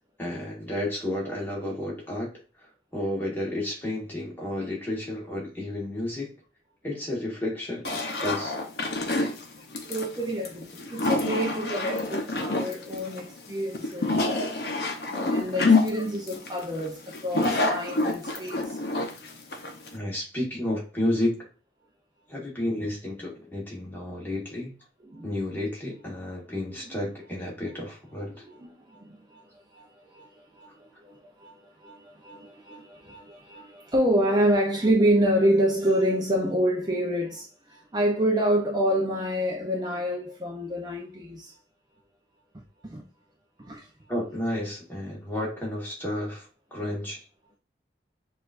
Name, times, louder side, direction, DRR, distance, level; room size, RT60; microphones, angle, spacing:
voice 1, 0.2-2.3 2.6-6.3 6.8-8.6 19.9-21.4 22.3-24.7 25.2-28.4 44.1-47.2, left 1 dB, 10° left, 1.3 m, -31 dB
sound 1, 7.8-20.0, left 3 dB, 60° left, 0.7 m, -27 dB
voice 2, 9.9-14.2 15.1-18.8 25.1-25.2 26.9-27.0 28.4-41.6 42.8-43.0 43.6-43.9, equal, 20° right, 0.6 m, -28 dB
6.6 x 2.5 x 2.5 m
head